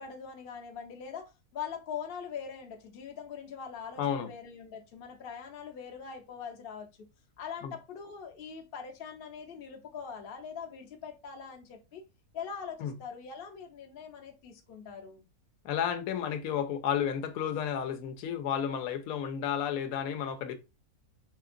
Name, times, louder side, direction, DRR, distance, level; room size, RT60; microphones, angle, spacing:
voice 1, 0.0-6.9 7.4-12.0 12.3-15.2, left 7 dB, 55° left, 0.7 m, -42 dB
voice 2, 4.0-4.3 7.6-7.8 12.8-12.9 15.6-20.5, left 8 dB, 70° left, 1.0 m, -32 dB
5.0 x 2.8 x 2.5 m
omnidirectional pair, 1.6 m